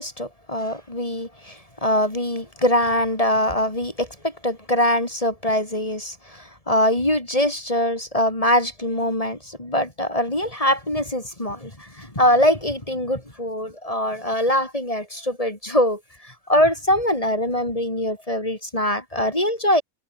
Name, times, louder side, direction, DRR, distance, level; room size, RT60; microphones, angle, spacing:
voice 1, 0.0-19.8, left 1 dB, 20° left, 3.4 m, -23 dB
omnidirectional pair, 1.7 m